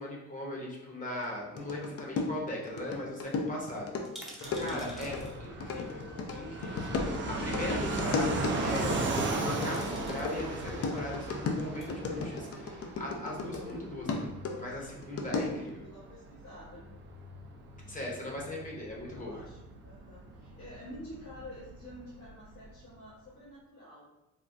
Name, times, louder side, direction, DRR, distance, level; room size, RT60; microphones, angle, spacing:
voice 1, 0.0-3.9 4.2-7.0 7.3-8.9 9.2-14.3 14.6-15.8 17.9-19.4, left 1 dB, 25° left, -3 dB, 0.8 m, -39 dB
sound 1, 1.2-2.0 2.3-2.4 2.6-2.8 3.1-3.2 3.9-5.3 6.5-6.6 9.2-9.4 9.7-10.4 11.5-11.9 12.6-13.3 13.5-13.6, equal, ahead, 0.7 m, -50 dB
sound 2, 1.6-13.7 14.1-15.7, left 4 dB, 50° left, 0.5 m, -35 dB
Fixed-wing aircraft airplane, 4.4-22.8, right 2 dB, 40° right, 0.5 m, -38 dB
voice 2, 4.6-5.1 7.0-8.0 13.6-14.2 15.3-16.9 18.4-18.5 19.1-24.1, left 1 dB, 85° left, -11 dB, 1.3 m, -49 dB
3.5 x 2.1 x 2.6 m, 0.97 s
cardioid pair, 90°, 30 cm